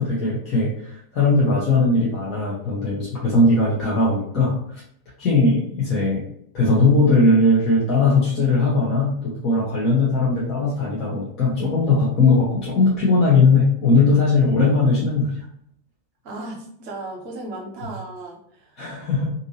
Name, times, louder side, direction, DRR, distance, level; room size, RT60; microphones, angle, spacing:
voice 1, 0.0-4.8 5.2-6.2 6.5-15.3 18.8-19.3, left 3 dB, 35° left, -6 dB, 0.9 m, -19 dB
voice 2, 16.2-18.8, right 2 dB, 40° right, 0 dB, 0.9 m, -35 dB
2.6 x 2.6 x 2.8 m, 0.67 s
figure-of-eight pair, 90°, 0 cm